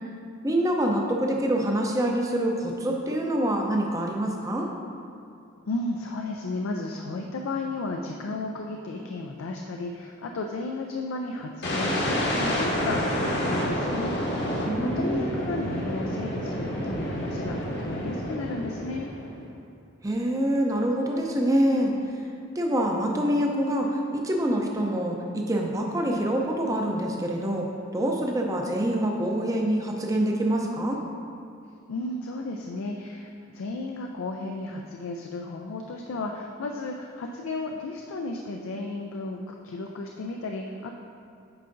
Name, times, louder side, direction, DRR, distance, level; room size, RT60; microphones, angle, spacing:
voice 1, 0.4-4.7 14.6-15.3 20.0-21.9 22.6-27.7 27.9-31.0, right 1 dB, 15° right, 0 dB, 0.5 m, -25 dB
voice 2, 5.7-14.1 14.5-19.1 31.9-40.9, left 2 dB, 70° left, 2 dB, 0.4 m, -33 dB
sound 1, 11.6-19.5, equal, 50° left, 1.0 m, -29 dB
8.5 x 5.6 x 2.6 m, 2.5 s
head